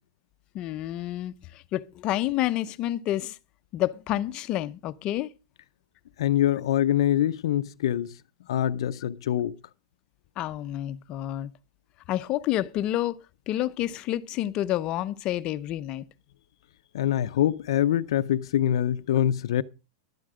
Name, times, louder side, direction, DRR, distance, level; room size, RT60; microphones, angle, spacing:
voice 1, 0.5-3.4 3.7-5.3 10.4-11.5 12.1-13.2 13.5-16.1, left 14 dB, 35° left, 0.7 m, -29 dB
voice 2, 6.2-8.2 8.5-9.6 16.9-19.6, left 11 dB, 75° left, 0.6 m, -24 dB
11.5 x 11.5 x 4.9 m
supercardioid pair, 150°, 3 cm